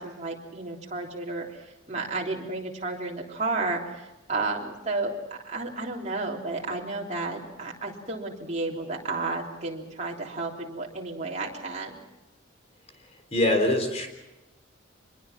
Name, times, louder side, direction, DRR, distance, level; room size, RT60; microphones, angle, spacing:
voice 1, 0.0-5.2 5.4-12.0, right 3 dB, 35° right, -1 dB, 3.5 m, -32 dB
voice 2, 13.3-14.1, left 1 dB, 30° left, 5 dB, 3.5 m, -23 dB
25.5 x 22.0 x 6.0 m, 1.0 s
head